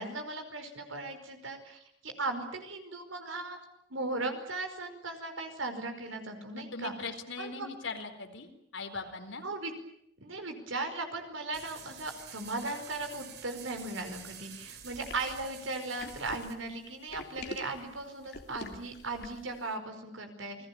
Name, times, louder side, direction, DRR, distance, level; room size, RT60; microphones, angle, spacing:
voice 1, 0.0-3.6 3.9-7.1 7.4-7.7 9.4-9.7 10.2-20.6, right 2 dB, 80° right, 7 dB, 5.0 m, -37 dB
voice 2, 6.5-9.4, left 4 dB, 75° left, 5 dB, 4.3 m, -40 dB
sound 1, 11.5-16.5, right 8 dB, 55° right, 3.0 m, -49 dB
sound 2, 14.8-19.5, left 2 dB, 55° left, 3.0 m, -45 dB
29.0 x 21.0 x 8.7 m, 0.72 s
head